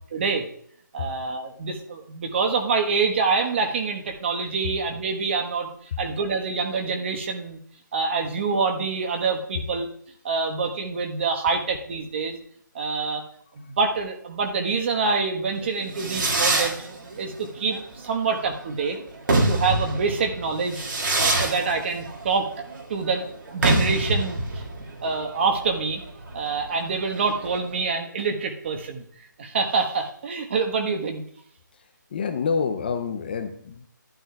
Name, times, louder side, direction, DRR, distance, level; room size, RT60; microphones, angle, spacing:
voice 1, 0.1-0.5 0.9-5.7 6.0-7.6 7.9-9.9 10.2-12.4 12.7-13.3 13.5-16.9 17.2-19.0 19.5-20.9 21.2-22.5 22.9-24.6 25.0-26.0 26.3-29.0 29.4-31.2, right 4 dB, 35° right, 4 dB, 1.2 m, -26 dB
Fireworks, 15.6-27.8, right 2 dB, 70° right, 2.1 m, -26 dB
voice 2, 32.1-33.9, left 5 dB, 30° left, 9 dB, 0.5 m, -27 dB
11.5 x 11.5 x 2.3 m, 0.63 s
hypercardioid pair, 165°, 11 cm